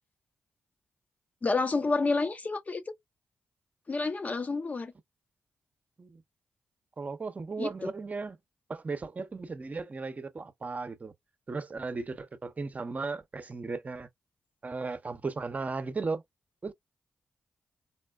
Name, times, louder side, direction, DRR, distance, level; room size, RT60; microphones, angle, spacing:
voice 1, 1.4-2.9 3.9-4.9 7.6-7.9, left 3 dB, 45° left, 0.8 m, -29 dB
voice 2, 7.0-8.4 8.7-11.1 11.5-14.1 14.6-16.2 16.6-16.7, right 4 dB, 40° right, 0.7 m, -36 dB
4.2 x 2.1 x 2.3 m
supercardioid pair, 40°, 4 cm